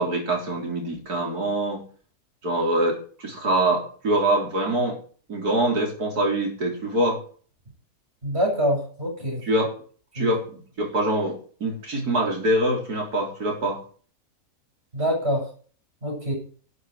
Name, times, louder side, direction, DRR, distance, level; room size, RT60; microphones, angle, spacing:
voice 1, 0.0-1.9 2.4-5.0 5.3-7.2 9.5-9.7 10.1-13.8, right 1 dB, 80° right, 1 dB, 4.5 m, -24 dB
voice 2, 8.2-9.4 10.2-10.3 14.9-15.5 16.0-16.3, equal, 40° right, -1 dB, 7.7 m, -25 dB
13.0 x 7.8 x 8.1 m, 0.43 s
omnidirectional pair, 1.6 m